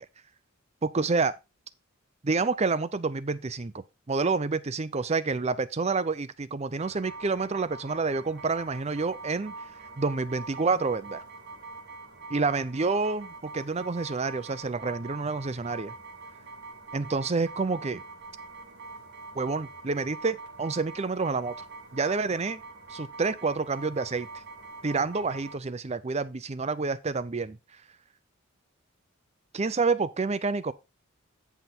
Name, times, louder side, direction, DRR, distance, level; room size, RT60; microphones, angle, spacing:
voice 1, 0.8-1.3 2.2-9.5 10.0-11.2 12.3-15.9 16.9-18.0 19.3-21.7 21.9-22.6 22.9-24.3 24.8-27.6 29.5-30.7, right 4 dB, 30° right, 0.5 m, -28 dB
sound 1, 6.8-25.6, right 3 dB, 55° right, 2.6 m, -44 dB
9.3 x 5.8 x 4.3 m
head